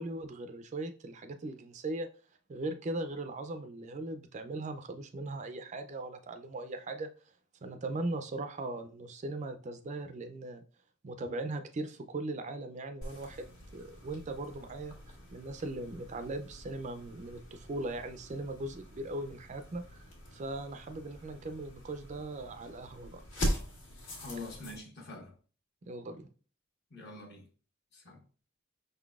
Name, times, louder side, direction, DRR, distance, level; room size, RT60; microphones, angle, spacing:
voice 1, 0.0-2.1 2.5-7.1 7.6-10.6 11.0-14.9 15.3-20.0 20.3-23.2 25.9-26.3, right 2 dB, 35° right, 0.4 m, -39 dB
sound 1, 13.0-24.8, equal, 70° left, 1.5 m, -42 dB
voice 2, 24.2-25.3 26.9-27.4 27.9-28.2, left 2 dB, 50° left, 1.2 m, -45 dB
5.4 x 3.8 x 2.3 m
head